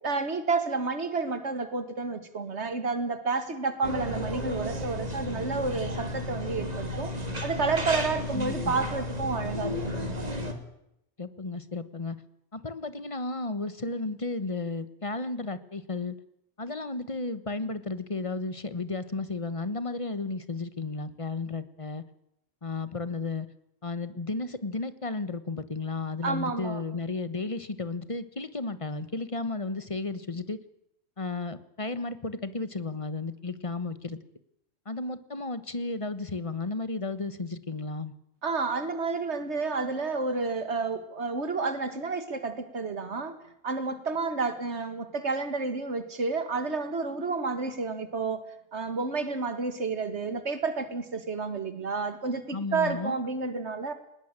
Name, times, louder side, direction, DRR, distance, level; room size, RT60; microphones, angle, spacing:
voice 1, 0.0-7.1 7.4-10.1 26.2-26.8 38.4-43.4 43.6-48.4 48.7-53.9, right 4 dB, 90° right, 9 dB, 2.1 m, -30 dB
sound 1, 3.8-10.5, equal, 35° right, 2.7 m, -33 dB
voice 2, 8.3-8.7 11.2-12.2 12.5-16.1 16.6-22.0 22.6-23.5 23.8-30.6 31.2-34.2 34.9-38.1 52.5-53.2, left 3 dB, 30° left, 13 dB, 1.2 m, -33 dB
20.0 x 18.5 x 8.9 m, 0.79 s
omnidirectional pair, 1.1 m